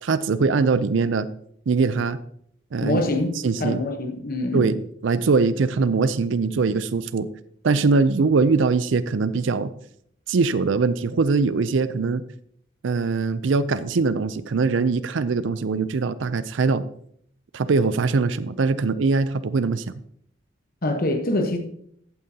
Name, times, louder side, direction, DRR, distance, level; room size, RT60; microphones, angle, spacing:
voice 1, 0.0-1.3 1.7-2.2 2.7-3.0 3.4-3.8 4.5-7.3 7.6-9.7 10.3-12.2 12.8-16.8 17.5-19.9, right 4 dB, 70° right, 0.5 m, -22 dB
voice 2, 2.8-3.3 3.6-4.7 20.8-21.6, left 1 dB, 50° left, 1.0 m, -24 dB
14.0 x 8.9 x 2.8 m
head